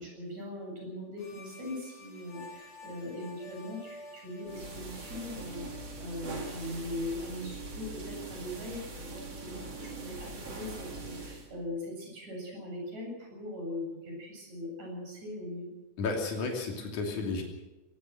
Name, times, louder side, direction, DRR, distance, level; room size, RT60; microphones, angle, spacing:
voice 1, 0.0-15.7, left 1 dB, 75° right, 0 dB, 9.3 m, -40 dB
sound 1, 1.2-7.0, left 2 dB, 60° left, 6.0 m, -51 dB
sound 2, 4.4-11.5, right 2 dB, 55° right, 4.8 m, -42 dB
voice 2, 16.0-17.4, left 3 dB, 85° left, 1 dB, 4.4 m, -32 dB
21.0 x 19.5 x 6.4 m, 1.1 s
omnidirectional pair, 3.3 m